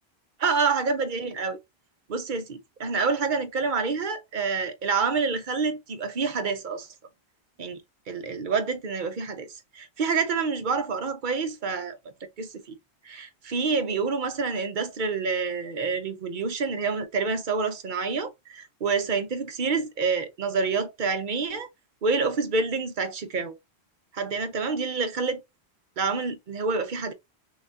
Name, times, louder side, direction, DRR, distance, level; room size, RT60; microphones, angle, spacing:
voice 1, 0.4-1.6 2.1-6.9 7.6-7.8 8.1-9.5 9.7-12.0 12.4-12.8 13.0-21.7 22.0-23.6 24.1-25.4 26.0-27.1, right 4 dB, 50° right, 0.9 m, -27 dB
5.7 x 2.4 x 2.7 m
omnidirectional pair, 1.1 m